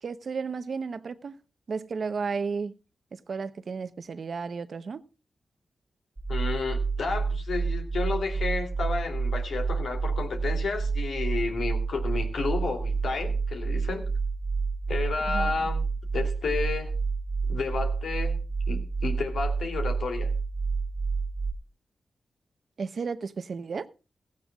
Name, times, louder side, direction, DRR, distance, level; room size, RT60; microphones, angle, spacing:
voice 1, 0.0-1.4 1.7-2.7 3.1-5.1 15.3-15.7 22.8-23.9, right 5 dB, 65° right, 0.9 m, -33 dB
sound 1, 6.2-21.5, right 4 dB, 25° right, 1.3 m, -29 dB
voice 2, 6.3-14.0 14.9-15.9 16.1-16.9 17.5-18.4 18.7-20.3, left 4 dB, 85° left, 2.8 m, -31 dB
16.0 x 15.0 x 2.3 m
cardioid pair, 75°, 0 cm